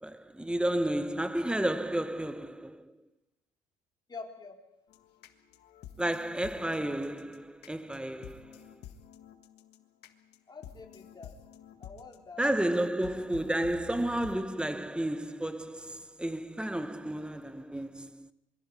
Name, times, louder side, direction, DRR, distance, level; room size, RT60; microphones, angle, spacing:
voice 1, 0.0-3.0 6.0-8.6 12.4-18.3, right 1 dB, 5° right, 1.0 m, -32 dB
voice 2, 4.1-4.6 10.5-11.3 11.8-12.4 12.7-12.9, left 4 dB, 25° left, 4.0 m, -46 dB
sound 1, 4.9-14.4, left 9 dB, 75° left, 1.7 m, -51 dB
27.0 x 22.5 x 4.8 m
cardioid pair, 110°, 17 cm